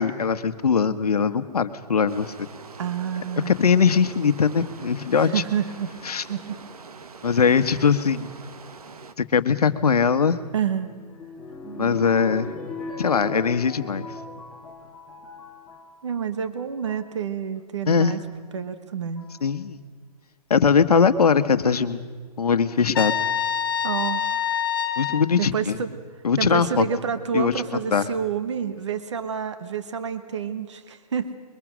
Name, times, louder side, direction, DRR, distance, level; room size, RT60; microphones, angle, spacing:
voice 1, 0.0-2.5 3.5-5.4 6.0-6.2 7.2-8.3 9.2-10.4 11.8-12.5 13.0-14.1 17.9-18.1 19.4-19.8 20.5-22.0 22.4-23.1 25.0-25.8 26.2-26.9 27.3-27.5 27.9-28.1, left 6 dB, 70° left, 10 dB, 1.3 m, -21 dB
sound 1, 2.1-9.1, right 5 dB, 65° right, 1.5 m, -44 dB
voice 2, 2.8-3.6 5.2-5.9 6.3-6.6 10.5-10.9 16.0-18.2 18.5-19.3 23.8-24.4 25.4-25.9 26.4-31.4, right 7 dB, 45° right, 11 dB, 1.3 m, -28 dB
sound 2, 10.3-15.9 16.7-17.1 18.3-18.4 19.1-19.5 21.6-22.2 22.9-23.0 23.2-23.3, left 2 dB, ahead, 1.8 m, -38 dB
Trumpet, 22.9-25.3, left 9 dB, 35° left, 0.7 m, -25 dB
23.0 x 22.5 x 6.2 m, 1.6 s
hypercardioid pair, 170°, 20 cm